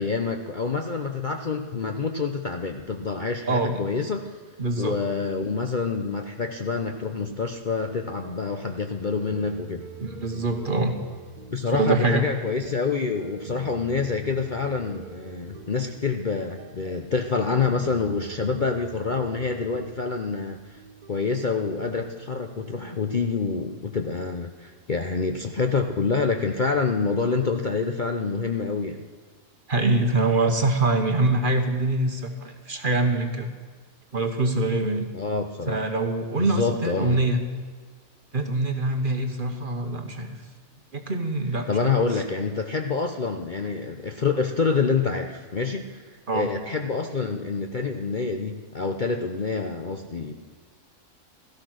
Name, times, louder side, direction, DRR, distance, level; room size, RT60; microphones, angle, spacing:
voice 1, 0.0-4.3 4.8-9.9 11.5-20.6 21.1-29.0 35.1-35.8 36.4-37.2 41.7-46.0 46.3-50.3, left 4 dB, 40° left, 5 dB, 0.8 m, -27 dB
voice 2, 3.5-3.9 4.6-5.0 10.0-10.9 11.7-12.2 29.7-33.5 34.1-35.1 35.7-37.4 38.3-40.3 40.9-42.2 46.3-46.5, right 2 dB, 35° right, 6 dB, 1.3 m, -24 dB
sound 1, 7.2-23.9, right 6 dB, 90° right, 1.5 m, -45 dB
16.5 x 13.5 x 6.4 m, 1.5 s
omnidirectional pair, 1.5 m